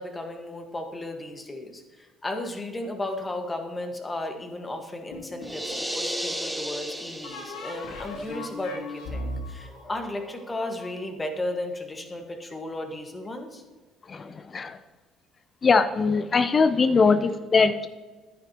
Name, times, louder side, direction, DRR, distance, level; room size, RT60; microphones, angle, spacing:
voice 1, 0.0-13.6, left 1 dB, 20° left, 4 dB, 1.6 m, -34 dB
sound 1, 5.1-6.0 7.2-10.9, left 2 dB, 80° left, 2.1 m, -37 dB
sound 2, 5.4-7.9, equal, 5° right, 1.1 m, -33 dB
voice 2, 14.1-14.8 15.6-17.9, left 4 dB, 40° left, 11 dB, 0.6 m, -21 dB
10.5 x 9.3 x 3.0 m, 1.3 s
hypercardioid pair, 65°, 0 cm